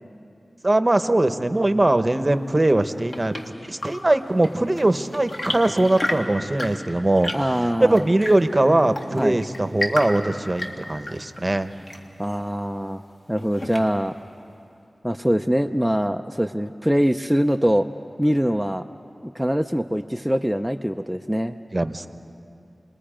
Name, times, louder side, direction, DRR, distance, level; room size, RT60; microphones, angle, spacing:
voice 1, 0.6-3.3 3.6-7.3 7.8-11.7 21.7-22.1, right 1 dB, 30° right, 9 dB, 1.0 m, -21 dB
Chirp tweet / Engine / Tap, 2.7-14.2, left 1 dB, 55° left, 2.1 m, -34 dB
voice 2, 7.3-8.0 9.2-9.4 12.2-13.0 13.3-14.1 15.0-17.9 18.2-18.8 19.2-21.6, equal, ahead, 4 dB, 0.5 m, -23 dB
29.5 x 21.0 x 5.1 m, 2.5 s
wide cardioid pair, 55°, 0 cm